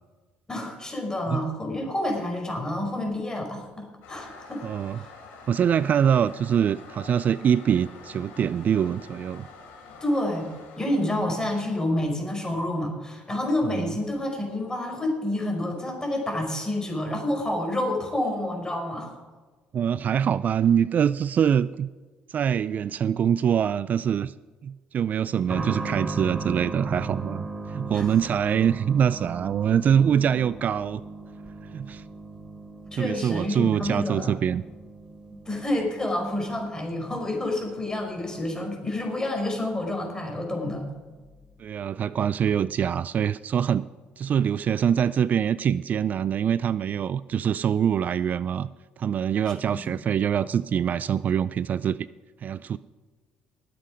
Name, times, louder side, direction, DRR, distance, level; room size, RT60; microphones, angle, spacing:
voice 1, 0.5-5.1 10.0-10.5 10.8-19.1 27.9-28.1 32.9-34.4 35.4-40.8 49.8-50.0, left 1 dB, 20° left, 2 dB, 4.6 m, -29 dB
Toilet flush, 4.0-11.5, left 4 dB, 90° left, 3.8 m, -47 dB
voice 2, 4.6-5.0 5.5-9.5 13.6-13.9 19.7-21.9 22.3-24.3 24.6-31.0 31.7-32.0 33.0-34.6 41.6-43.9 44.2-48.7 49.0-52.0 52.4-52.8, right 8 dB, 50° right, 17 dB, 0.3 m, -24 dB
sound 1, 25.5-39.9 40.2-40.3 41.2-41.4, right 3 dB, 20° right, 2.8 m, -38 dB
20.0 x 7.7 x 5.1 m, 1.3 s
supercardioid pair, 80°, 4 cm